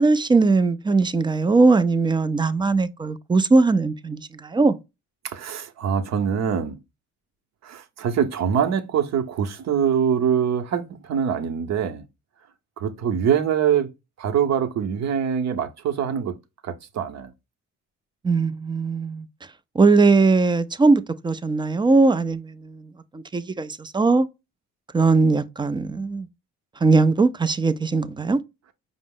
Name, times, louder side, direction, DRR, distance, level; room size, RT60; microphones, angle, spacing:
voice 1, 0.0-4.8 18.2-19.3 19.8-24.3 24.9-26.3 26.8-28.4, right 3 dB, 15° right, 0.3 m, -20 dB
voice 2, 5.3-6.8 7.6-12.0 12.8-13.9 14.2-16.4 16.6-17.3, right 8 dB, 60° right, 0.8 m, -24 dB
5.1 x 2.0 x 3.7 m
cardioid pair, 90°, 30 cm